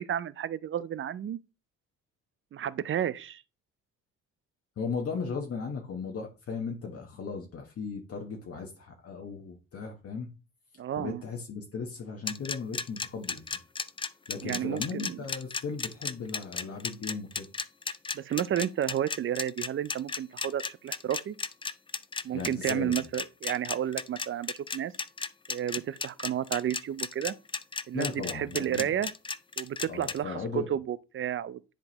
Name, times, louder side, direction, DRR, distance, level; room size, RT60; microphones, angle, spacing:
voice 1, 0.0-1.4 2.5-3.4 10.8-11.2 14.4-15.3 18.1-21.4 22.2-24.9 25.5-27.3 27.9-29.1 29.6-31.6, right 10 dB, 45° right, 0.4 m, -32 dB
voice 2, 4.8-10.3 11.0-13.4 14.3-17.5 22.3-23.0 27.9-29.0 29.9-30.7, left 5 dB, 50° left, 1.1 m, -36 dB
sound 1, 12.3-30.2, left 4 dB, 20° left, 0.4 m, -34 dB
10.0 x 3.8 x 2.9 m
cardioid pair, 90°, 30 cm